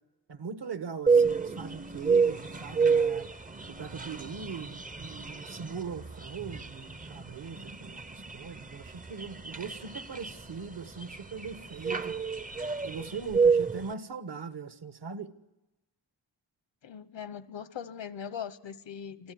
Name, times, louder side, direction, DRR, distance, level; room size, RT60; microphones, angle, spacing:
voice 1, 0.3-3.3 3.7-12.1 12.8-15.3, right 5 dB, 65° right, 1.5 m, -40 dB
sound 1, 1.1-13.9, right 5 dB, 20° right, 0.7 m, -29 dB
voice 2, 16.8-19.3, left 8 dB, 75° left, 1.2 m, -40 dB
25.0 x 14.5 x 9.5 m
wide cardioid pair, 90°, 44 cm